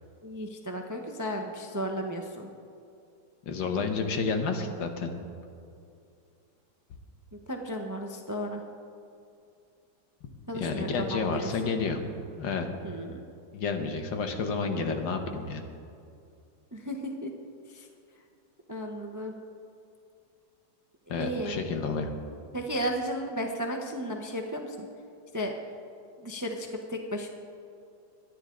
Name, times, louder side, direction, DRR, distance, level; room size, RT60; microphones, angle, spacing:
voice 1, 0.2-2.5 7.3-8.6 10.5-11.5 12.8-13.2 16.7-17.3 17.7-17.9 18.7-19.3 21.1-21.6 22.5-24.9 25.3-25.5 26.2-27.3, equal, 20° right, 3 dB, 0.5 m, -34 dB
voice 2, 3.4-5.1 10.5-12.0 12.4-12.7 13.5-15.6 21.1-22.1, left 4 dB, 85° left, 5 dB, 1.9 m, -30 dB
23.0 x 9.9 x 3.8 m, 2.5 s
omnidirectional pair, 1.9 m